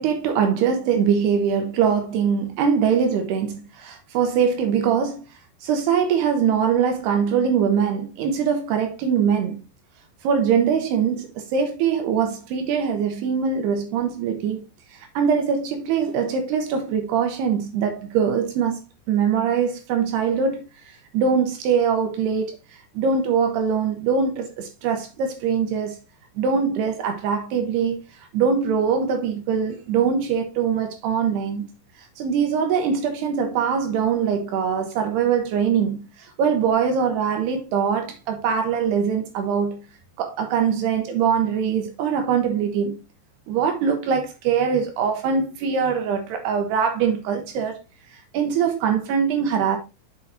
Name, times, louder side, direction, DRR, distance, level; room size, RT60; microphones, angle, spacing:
voice 1, 0.0-5.2 5.6-9.6 10.2-14.6 15.2-18.8 19.1-20.6 21.1-22.5 23.0-26.0 26.4-28.0 28.3-31.7 32.2-36.0 36.4-39.8 40.2-43.0 43.5-47.8 48.3-49.8, right 7 dB, 75° right, 2.7 m, -22 dB
7.1 x 6.3 x 2.8 m
omnidirectional pair, 5.2 m